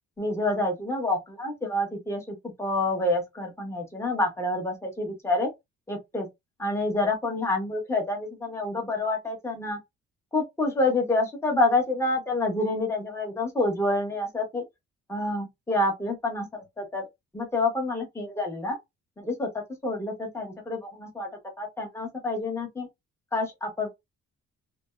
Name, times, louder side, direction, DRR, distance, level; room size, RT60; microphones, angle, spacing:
voice 1, 0.2-5.5 5.9-6.3 6.6-9.8 10.3-14.6 15.1-16.5 16.8-17.1 17.3-18.8 19.2-21.3 21.6-22.9 23.3-23.9, left 2 dB, 10° left, 1.1 m, -28 dB
2.5 x 2.1 x 2.3 m
cardioid pair, 90°, 30 cm